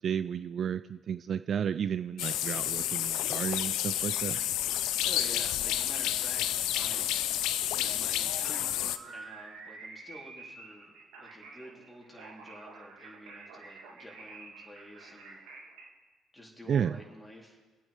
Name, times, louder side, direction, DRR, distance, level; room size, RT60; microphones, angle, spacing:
voice 1, 0.0-4.4 16.7-17.0, right 8 dB, 50° right, 13 dB, 0.3 m, -32 dB
sound 1, 2.2-9.0, left 12 dB, 65° left, 0.5 m, -30 dB
voice 2, 5.0-7.2 7.7-15.4 16.3-17.6, equal, 10° left, -1 dB, 3.5 m, -49 dB
sound 2, 8.2-15.9, right 4 dB, 70° right, 1.9 m, -49 dB
26.0 x 8.8 x 3.5 m, 1.3 s
figure-of-eight pair, 50°, 0 cm